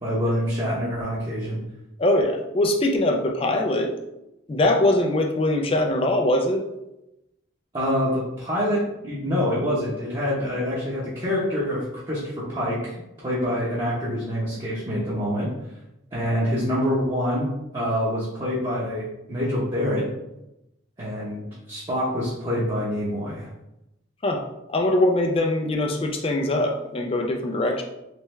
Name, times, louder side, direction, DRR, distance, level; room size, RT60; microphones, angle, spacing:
voice 1, 0.0-1.6 7.7-13.0 13.2-15.5 16.1-20.1 21.0-23.5, equal, 25° right, -8 dB, 0.8 m, -26 dB
voice 2, 2.0-3.9 4.5-6.6 24.2-24.4 24.7-27.8, left 1 dB, 30° left, 3 dB, 0.4 m, -22 dB
3.4 x 3.2 x 3.2 m, 0.90 s
head